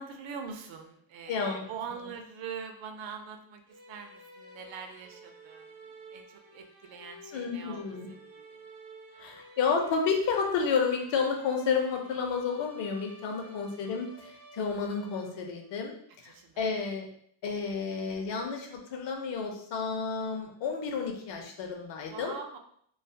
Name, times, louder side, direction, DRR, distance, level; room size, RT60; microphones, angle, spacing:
voice 1, 0.0-8.7 13.2-13.7 16.2-16.8 22.1-22.6, right 6 dB, 70° right, 5 dB, 0.5 m, -44 dB
voice 2, 1.3-1.7 7.3-8.1 9.2-17.1 17.4-22.4, left 5 dB, 65° left, 3 dB, 0.6 m, -31 dB
Sad Violin, 3.7-15.7, right 1 dB, 50° right, 1.0 m, -52 dB
2.6 x 2.3 x 2.2 m, 0.65 s
cardioid pair, 125°, 47 cm